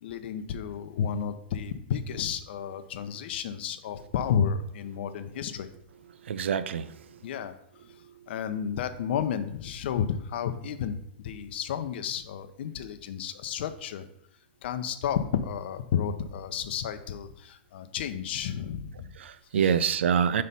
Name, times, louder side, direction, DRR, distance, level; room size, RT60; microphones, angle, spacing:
voice 1, 0.0-5.7 7.2-7.6 8.3-11.0 11.2-14.1 14.6-19.1, left 8 dB, 65° left, 10 dB, 0.6 m, -31 dB
voice 2, 6.2-7.2 19.2-20.4, right 7 dB, 85° right, 14 dB, 0.4 m, -26 dB
5.7 x 3.2 x 5.3 m, 0.72 s
hypercardioid pair, 135°, 6 cm